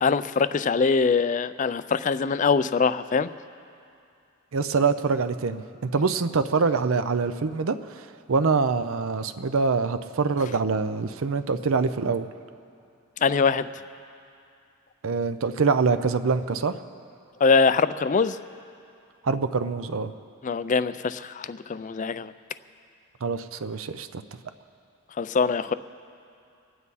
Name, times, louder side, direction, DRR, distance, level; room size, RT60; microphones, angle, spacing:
voice 1, 0.0-3.3 13.2-13.7 17.4-18.4 20.4-22.3 25.2-25.7, left 5 dB, 35° left, 14 dB, 0.3 m, -23 dB
voice 2, 4.5-5.6 5.9-12.3 15.0-16.7 19.2-20.1 23.2-24.2, right 4 dB, 65° right, 11 dB, 0.5 m, -25 dB
27.0 x 9.4 x 4.1 m, 2.5 s
head